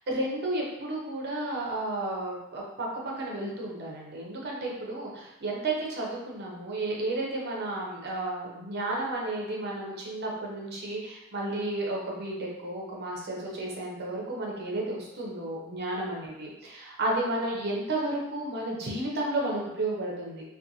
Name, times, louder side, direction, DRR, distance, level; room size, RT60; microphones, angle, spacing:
voice 1, 0.1-2.9 3.2-20.4, right 2 dB, 50° right, -2 dB, 0.6 m, -32 dB
2.5 x 2.3 x 2.7 m, 0.91 s
head